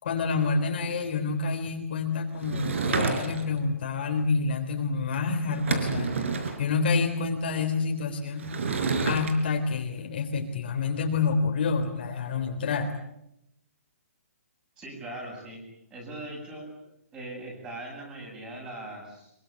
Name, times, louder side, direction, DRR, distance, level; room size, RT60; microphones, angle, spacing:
voice 1, 0.0-6.2 6.6-8.5 9.0-12.9, left 4 dB, 40° left, 3 dB, 3.6 m, -28 dB
Sliding door / Wood, 2.4-3.6 5.1-5.2 5.5-6.6 8.4-9.3, right 4 dB, 55° right, 4.6 m, -29 dB
voice 2, 14.8-15.6 15.9-16.8 17.1-19.3, right 1 dB, 10° right, 0 dB, 7.8 m, -40 dB
25.0 x 24.0 x 8.3 m, 0.80 s
hypercardioid pair, 175°, 8 cm